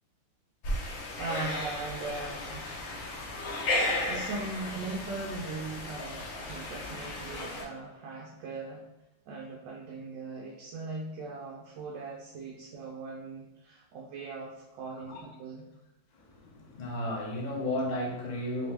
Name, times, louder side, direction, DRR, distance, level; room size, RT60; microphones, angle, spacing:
sound 1, 0.6-7.6, left 1 dB, 65° left, 0.8 m, -34 dB
voice 1, 1.2-2.7 3.2-3.5 4.0-8.9 9.3-15.7, right 3 dB, 75° right, -1 dB, 1.2 m, -39 dB
voice 2, 16.1-18.7, left 1 dB, 80° left, -2 dB, 0.4 m, -34 dB
3.3 x 3.0 x 3.3 m, 0.96 s
omnidirectional pair, 2.0 m